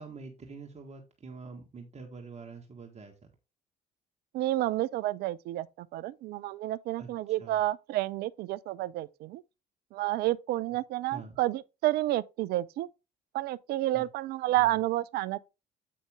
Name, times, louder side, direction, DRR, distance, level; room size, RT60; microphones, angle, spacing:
voice 1, 0.0-3.3 7.0-7.1 7.4-7.6 11.1-11.4 13.9-14.1 14.6-14.7, right 4 dB, 30° right, 1.6 m, -45 dB
voice 2, 4.3-9.4 9.9-12.9 13.3-15.4, right 16 dB, 50° right, 0.5 m, -30 dB
8.5 x 5.3 x 3.5 m
figure-of-eight pair, 50°, 21 cm